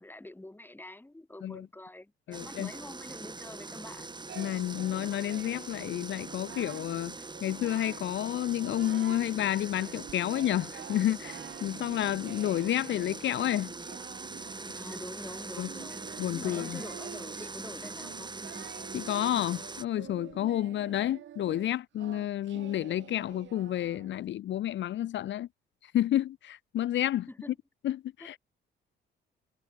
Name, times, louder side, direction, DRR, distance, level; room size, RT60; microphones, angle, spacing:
voice 1, 0.0-4.2 14.7-18.5 27.3-27.5 28.2-28.4, left 1 dB, 10° left, 3.5 m, -46 dB
voice 2, 2.3-2.7 4.4-7.1 7.4-13.7 15.6-15.7 16.2-16.8 18.9-25.5 25.8-27.3 27.8-28.4, left 12 dB, 70° left, 0.8 m, -30 dB
sound 1, 2.3-19.8, right 3 dB, 20° right, 4.1 m, -42 dB
Singing, 4.3-5.8 6.2-6.9 7.3-8.1 8.4-9.3 9.7-24.2, right 11 dB, 70° right, 2.2 m, -48 dB
cardioid pair, 90°, 20 cm